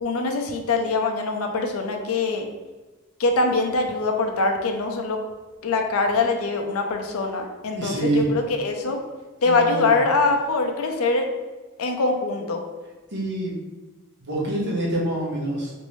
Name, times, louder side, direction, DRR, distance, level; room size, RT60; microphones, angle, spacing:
voice 1, 0.0-2.5 3.2-5.2 5.6-9.0 9.4-11.3 11.8-12.6, left 3 dB, 70° left, 3 dB, 0.5 m, -23 dB
voice 2, 7.7-8.2 9.5-9.9 13.1-13.5 14.2-15.7, right 1 dB, 55° right, -4 dB, 0.9 m, -26 dB
3.1 x 2.6 x 3.1 m, 1.2 s
head